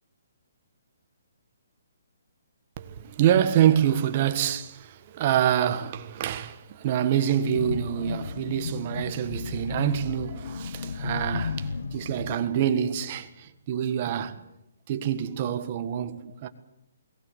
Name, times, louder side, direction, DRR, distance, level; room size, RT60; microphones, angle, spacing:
voice 1, 2.8-14.4 14.9-16.5, right 10 dB, 30° right, 1.5 m, -26 dB
sound 1, 7.3-12.4, left 5 dB, 70° left, 1.1 m, -34 dB
21.0 x 19.0 x 8.1 m
hypercardioid pair, 170°, 0 cm